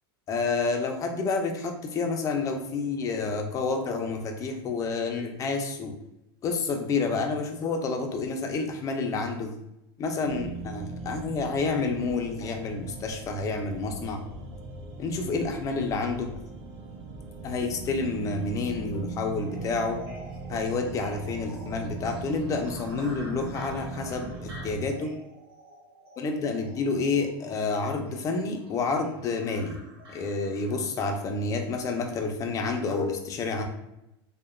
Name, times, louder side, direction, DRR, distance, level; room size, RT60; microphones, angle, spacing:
voice 1, 0.3-5.9 6.4-9.5 10.0-14.2 15.0-16.3 17.4-20.0 20.5-25.1 26.2-29.8 30.1-33.7, left 4 dB, 25° left, 4 dB, 0.4 m, -29 dB
sound 1, 10.2-24.9, right 3 dB, 45° right, 0.5 m, -40 dB
sound 2, 19.4-30.9, right 1 dB, 85° right, 0.7 m, -49 dB
2.8 x 2.1 x 2.4 m, 0.87 s
supercardioid pair, 130°, 13 cm